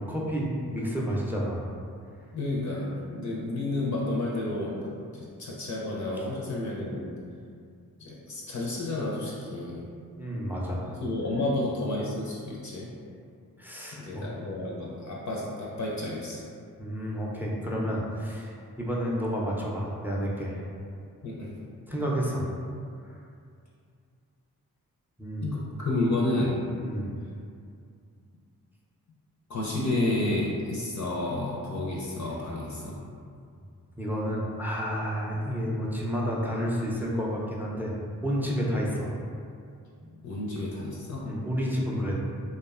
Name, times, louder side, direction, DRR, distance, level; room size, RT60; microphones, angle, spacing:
voice 1, 0.0-1.7 10.2-10.9 13.6-14.3 16.8-20.6 21.9-22.5 23.0-23.1 25.2-25.5 26.8-27.1 34.0-37.9 38.2-39.1 41.2-42.1, equal, 5° right, -4 dB, 0.4 m, -30 dB
voice 2, 2.3-7.1 8.0-9.9 11.0-12.9 13.9-16.4 21.2-21.5 25.4-26.6 29.5-33.0 40.2-41.2, left 2 dB, 50° left, -4 dB, 0.5 m, -31 dB
2.5 x 2.1 x 2.4 m, 2.3 s
supercardioid pair, 40°, 37 cm